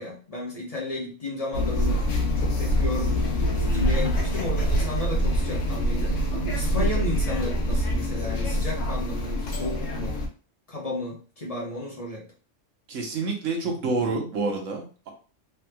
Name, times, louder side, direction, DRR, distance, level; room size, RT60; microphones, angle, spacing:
voice 1, 0.0-2.0 2.4-3.3 3.6-6.2 6.5-10.2 10.7-12.3, left 2 dB, 35° left, -3 dB, 1.0 m, -33 dB
sound 1, 1.5-10.3, equal, 85° left, 1.1 m, -25 dB
voice 2, 12.9-15.1, right 3 dB, 85° right, 1 dB, 1.2 m, -28 dB
3.4 x 3.2 x 2.2 m, 0.37 s
omnidirectional pair, 1.3 m